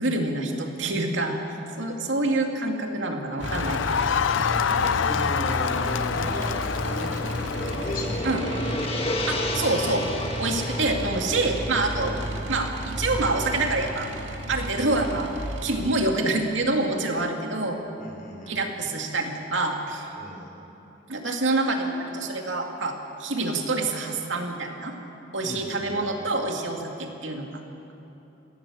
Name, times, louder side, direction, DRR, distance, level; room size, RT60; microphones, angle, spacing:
voice 1, 0.0-1.4 1.8-4.2 8.2-8.4 9.3-10.1 10.4-12.2 12.5-14.1 14.5-15.3 15.6-17.8 18.5-20.1 21.1-24.9 25.3-27.6, right 2 dB, 90° right, 2 dB, 2.3 m, -26 dB
Crowd, 3.4-8.2, left 7 dB, 85° left, 0.4 m, -27 dB
sound 1, 3.4-15.9, equal, 70° right, 2.3 m, -33 dB
voice 2, 4.4-8.5 10.6-10.9 18.0-18.6 20.2-20.6 25.4-26.3, equal, 50° left, 0 dB, 4.2 m, -36 dB
Gong, 6.5-14.9, left 1 dB, 30° left, 1.6 m, -34 dB
23.0 x 17.0 x 7.3 m, 3.0 s
head